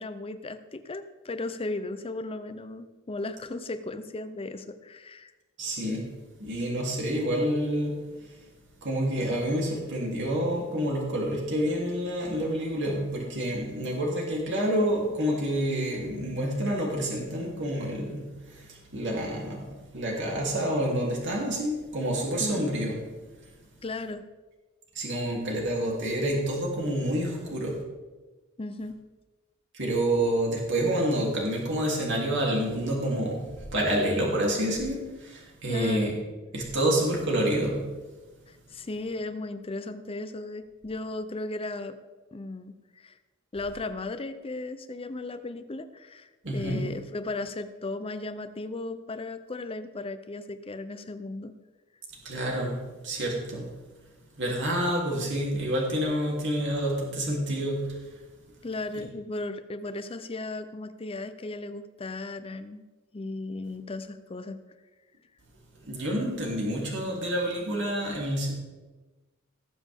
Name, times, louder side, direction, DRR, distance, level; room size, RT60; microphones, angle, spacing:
voice 1, 0.0-5.3 22.4-22.7 23.8-24.3 28.6-29.0 35.7-36.1 38.5-42.0 42.3-43.2 43.5-51.5 58.6-62.8 63.1-64.6, left 2 dB, 25° left, 10 dB, 0.6 m, -36 dB
voice 2, 5.6-6.0 6.4-8.0 8.8-19.7 19.9-23.0 24.9-27.8 29.7-36.1 36.5-37.8 46.4-46.8 52.2-52.8 53.0-53.7 54.4-58.0 65.8-68.5, right 1 dB, 60° right, -2 dB, 3.1 m, -28 dB
18.5 x 7.4 x 3.6 m, 1.2 s
head